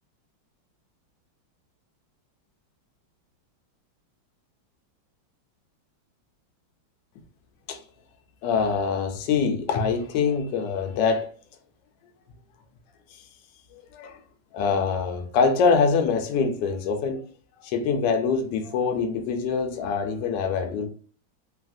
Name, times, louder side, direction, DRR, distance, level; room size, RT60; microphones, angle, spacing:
voice 1, 8.4-11.3 13.7-14.2 14.5-17.2 17.6-20.9, left 5 dB, 70° left, 1.1 m, -24 dB
3.2 x 2.4 x 2.5 m
omnidirectional pair, 2.2 m